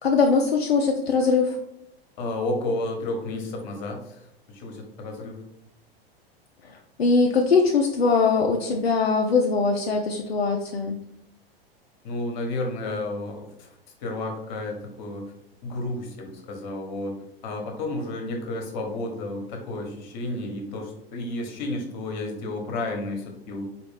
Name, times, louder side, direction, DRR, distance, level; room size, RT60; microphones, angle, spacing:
voice 1, 0.0-1.6 6.6-11.0, left 4 dB, 75° left, 2 dB, 0.5 m, -21 dB
voice 2, 2.2-4.2 4.5-5.4 12.0-13.7 14.0-15.3 15.6-23.7, left 2 dB, 50° left, 2 dB, 1.0 m, -31 dB
4.2 x 2.4 x 3.3 m, 0.78 s
figure-of-eight pair, 95°, 30 cm